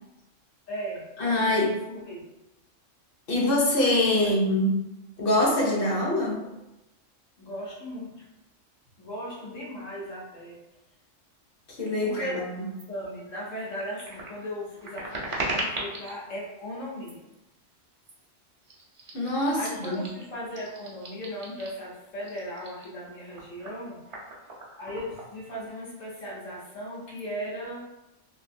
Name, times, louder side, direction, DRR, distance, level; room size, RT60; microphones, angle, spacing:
voice 1, 0.7-1.1 1.4-2.2 4.1-4.3 7.4-8.2 9.0-10.6 12.0-12.5 12.9-17.2 19.5-24.0 24.8-27.9, equal, 80° left, -5 dB, 1.4 m, -37 dB
voice 2, 1.2-1.8 3.3-4.7 5.2-6.4 11.8-12.6 19.1-20.0, left 1 dB, 55° left, -2 dB, 0.8 m, -24 dB
sound 1, 12.7-12.9 13.3-16.2 16.9-17.3 18.0-18.3 18.6-21.9 22.2-25.8 26.1-26.3 26.6-27.2, right 2 dB, 50° right, 0.4 m, -39 dB
3.2 x 2.5 x 2.6 m, 0.94 s
omnidirectional pair, 1.3 m